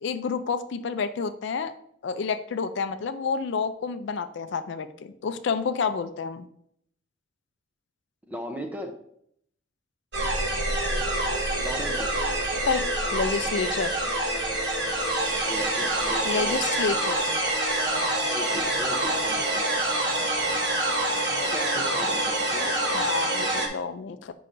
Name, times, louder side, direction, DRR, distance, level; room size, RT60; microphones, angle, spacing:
voice 1, 0.0-1.7 2.0-6.5 12.7-13.9 16.2-17.2 22.9-24.3, left 5 dB, 65° left, 10 dB, 0.4 m, -29 dB
voice 2, 8.3-8.9 11.6-12.2 15.4-16.6 18.3-19.8 21.4-22.7, right 1 dB, 10° right, 4 dB, 0.5 m, -37 dB
sound 1, 10.1-23.7, right 1 dB, 60° right, 1.1 m, -26 dB
7.5 x 5.5 x 2.5 m, 0.71 s
head